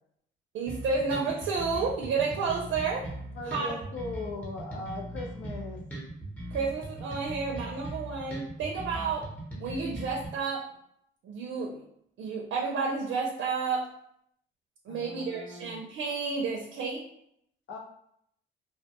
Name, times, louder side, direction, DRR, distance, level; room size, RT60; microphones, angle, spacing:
voice 1, 0.5-3.1 3.5-3.7 6.5-9.3 9.6-10.7 11.2-11.8 12.2-13.9 14.9-17.1, right 4 dB, 75° right, -1 dB, 0.5 m, -31 dB
sound 1, 0.7-10.3, right 1 dB, 5° left, 0.9 m, -39 dB
voice 2, 3.4-5.8 14.9-15.8 17.7-17.8, left 2 dB, 70° left, 1 dB, 0.7 m, -39 dB
2.2 x 2.1 x 2.9 m, 0.72 s
cardioid pair, 90°, 20 cm